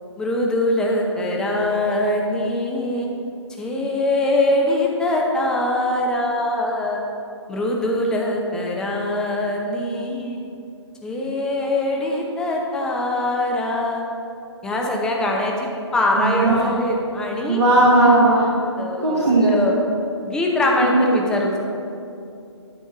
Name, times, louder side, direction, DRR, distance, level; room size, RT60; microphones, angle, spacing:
voice 1, 0.2-3.1 3.6-7.0 7.5-10.4 11.0-14.0 14.6-17.6 18.8-19.7 20.3-21.6, left 1 dB, 5° left, -1 dB, 0.6 m, -22 dB
voice 2, 16.2-16.6 17.5-18.5 19.0-19.5 20.9-21.0, right 2 dB, 70° right, -6 dB, 1.6 m, -16 dB
10.0 x 4.5 x 5.7 m, 2.6 s
figure-of-eight pair, 135°, 15 cm